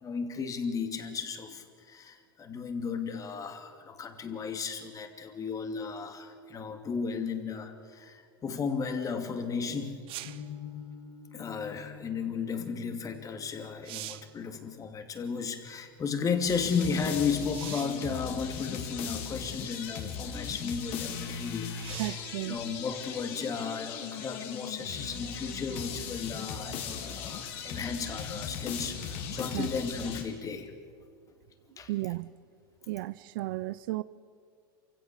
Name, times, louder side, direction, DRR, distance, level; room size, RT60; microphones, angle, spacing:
voice 1, 0.0-10.0 11.3-22.2 22.4-30.7 31.8-31.9, left 5 dB, 30° left, 2.6 m, -34 dB
sound 1, 10.1-10.5 13.2-13.3 13.7-14.4 17.5-18.1 19.1-19.2 21.8-22.3 25.9-26.0, right 15 dB, 45° right, 0.9 m, -42 dB
sound 2, 10.2-16.3, left 7 dB, 90° left, 6.7 m, -49 dB
sound 3, 16.5-30.2, left 7 dB, 55° left, 4.0 m, -38 dB
voice 2, 22.0-22.6 29.5-29.7 31.9-32.3 32.9-34.0, right 18 dB, 65° right, 0.6 m, -33 dB
27.5 x 16.5 x 6.9 m
hypercardioid pair, 95°, 12 cm